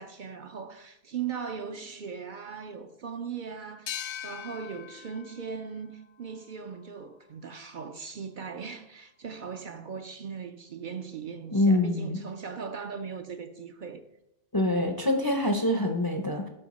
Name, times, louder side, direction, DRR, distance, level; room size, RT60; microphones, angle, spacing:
voice 1, 0.0-14.0, right 6 dB, 55° right, 0.7 m, -39 dB
sound 1, 3.9-7.2, left 10 dB, 85° left, 0.9 m, -42 dB
voice 2, 11.5-12.2 14.5-16.5, left 1 dB, 25° left, 0.5 m, -25 dB
11.0 x 4.5 x 4.1 m
omnidirectional pair, 1.1 m